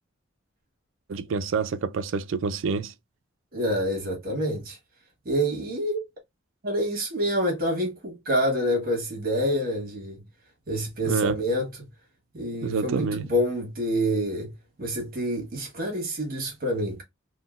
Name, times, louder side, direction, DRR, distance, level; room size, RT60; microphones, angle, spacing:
voice 1, 1.1-2.9 11.0-11.4 12.6-13.3, right 5 dB, 70° right, 0.4 m, -27 dB
voice 2, 3.5-4.8 5.2-6.1 6.6-10.2 10.7-11.9 12.3-17.0, equal, 45° right, 1.2 m, -27 dB
3.8 x 2.1 x 2.3 m
head